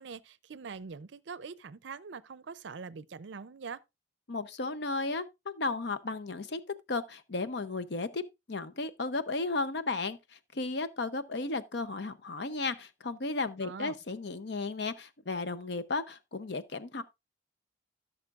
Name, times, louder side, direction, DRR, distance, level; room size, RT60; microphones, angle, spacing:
voice 1, 0.0-3.8 13.6-14.0, right 5 dB, 65° right, 0.5 m, -43 dB
voice 2, 4.3-6.6 6.9-8.2 8.5-17.0, left 3 dB, 60° left, 0.7 m, -34 dB
16.0 x 6.5 x 2.4 m
head